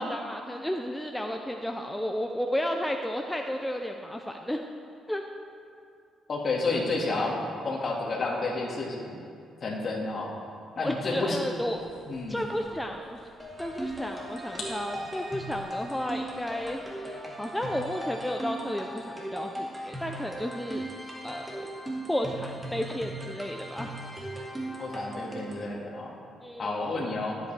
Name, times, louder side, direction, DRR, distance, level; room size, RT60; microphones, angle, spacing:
voice 1, 0.0-4.7 5.1-5.2 10.8-11.8 12.3-13.2 13.6-20.8 21.2-21.7 22.1-23.9 26.4-27.1, equal, 5° left, 3 dB, 0.5 m, -33 dB
voice 2, 6.3-9.2 9.6-10.3 10.8-11.4 12.1-12.4 24.8-26.1 26.6-27.4, left 3 dB, 45° left, -2 dB, 1.9 m, -30 dB
sound 1, 11.5-16.9, left 2 dB, 65° left, 2.5 m, -48 dB
sound 2, 13.4-25.7, right 1 dB, 10° right, 2.1 m, -38 dB
13.5 x 8.1 x 3.4 m, 2.4 s
cardioid pair, 90°, 0 cm